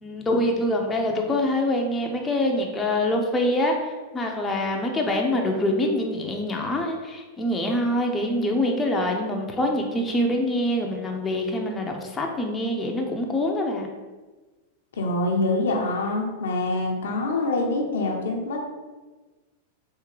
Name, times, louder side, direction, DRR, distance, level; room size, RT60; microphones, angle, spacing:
voice 1, 0.0-13.9, left 1 dB, 15° left, 1 dB, 0.6 m, -25 dB
voice 2, 15.0-18.6, left 2 dB, 80° left, 0 dB, 0.7 m, -25 dB
3.6 x 2.8 x 3.1 m, 1.2 s
hypercardioid pair, 110°, 0 cm